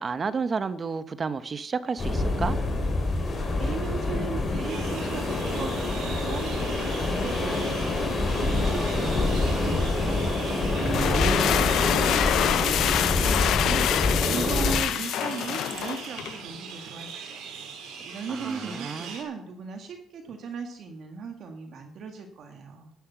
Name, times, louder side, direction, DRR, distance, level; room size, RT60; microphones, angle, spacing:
voice 1, 0.0-2.6 10.8-11.5 18.3-19.1, right 5 dB, 30° right, 13 dB, 0.9 m, -31 dB
sound 1, 2.0-14.8, left 2 dB, 30° left, 4.1 m, -26 dB
voice 2, 3.6-10.2 10.5-17.4 18.0-22.9, right 5 dB, 55° right, 4 dB, 2.0 m, -38 dB
sound 2, 4.7-19.2, right 6 dB, 85° right, 4.0 m, -41 dB
sound 3, 10.8-16.4, left 12 dB, 65° left, 0.4 m, -26 dB
12.0 x 11.0 x 5.9 m, 0.67 s
cardioid pair, 125°, 0 cm